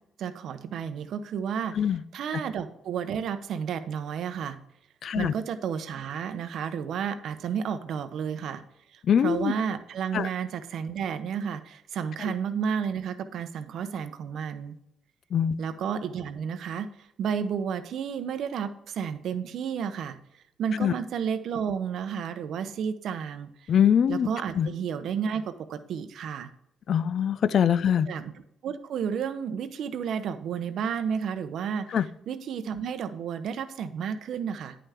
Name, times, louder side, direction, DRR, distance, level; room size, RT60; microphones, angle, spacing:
voice 1, 0.2-4.6 5.2-8.6 8.9-14.7 15.6-20.2 20.6-23.7 24.1-26.5 28.1-28.3 28.6-34.8, right 7 dB, 70° right, 11 dB, 0.7 m, -32 dB
voice 2, 5.0-5.3 9.1-9.5 10.1-10.3 15.3-15.5 20.8-20.9 23.7-24.3 24.6-24.7 26.9-28.1 31.9-32.1, left 8 dB, 60° left, 17 dB, 0.4 m, -23 dB
9.6 x 5.7 x 3.5 m, 0.80 s
cardioid pair, 90°, 0 cm